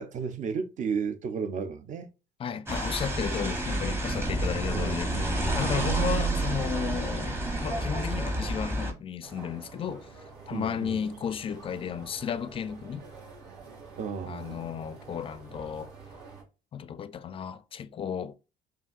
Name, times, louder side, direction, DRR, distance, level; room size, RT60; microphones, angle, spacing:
voice 1, 0.0-2.1 4.7-5.8 10.5-11.0 14.0-14.7, right 6 dB, 45° right, 0.6 m, -34 dB
voice 2, 2.4-10.1 10.5-13.0 14.3-15.9 16.7-18.3, left 7 dB, 35° left, 0.4 m, -34 dB
sound 1, 2.7-8.9, right 2 dB, 15° right, 0.9 m, -29 dB
sound 2, 9.2-16.4, right 4 dB, 80° right, 1.8 m, -48 dB
5.5 x 2.6 x 2.4 m
cardioid pair, 110°, 17 cm